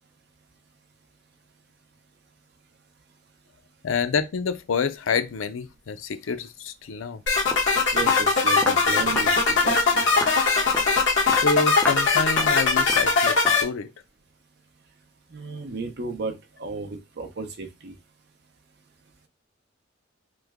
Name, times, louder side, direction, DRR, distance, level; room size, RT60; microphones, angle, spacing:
voice 1, 3.8-7.2 11.4-13.9, left 5 dB, 90° left, 0.5 m, -27 dB
Walk footsteps, 7.2-7.3 7.5-7.7 8.1-8.3 8.6-8.8 9.2-9.4 9.7-9.9 10.2-10.4 10.7-11.0 11.3-11.5 11.8-12.1 12.4-12.6 12.9-13.1 13.4-13.7, equal, 10° left, 0.4 m, -33 dB
sound 1, 7.3-13.6, left 4 dB, 65° left, 1.1 m, -20 dB
voice 2, 7.9-10.0 15.3-17.9, right 3 dB, 55° right, 0.7 m, -34 dB
3.1 x 2.1 x 3.5 m
head